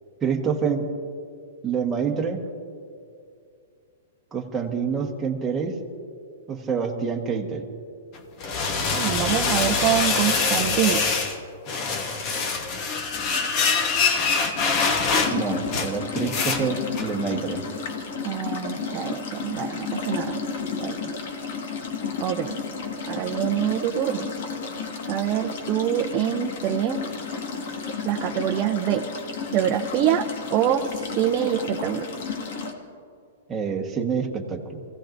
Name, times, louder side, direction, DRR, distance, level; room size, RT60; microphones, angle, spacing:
voice 1, 0.2-0.9 1.6-2.4 4.3-5.8 6.5-7.7 15.3-17.6 33.5-34.9, right 6 dB, 10° right, 0 dB, 1.4 m, -27 dB
sound 1, 8.1-11.4 11.7-17.1, left 4 dB, 35° left, 1.1 m, -24 dB
voice 2, 8.9-11.0 18.2-20.4 20.8-21.0 22.2-22.6 23.1-24.3 25.1-27.0 28.0-29.0 29.5-32.0, right 11 dB, 30° right, 2 dB, 0.6 m, -25 dB
sound 2, 15.2-32.7, left 5 dB, 60° left, 1.7 m, -32 dB
26.0 x 16.0 x 2.6 m, 2.4 s
hypercardioid pair, 155°, 0 cm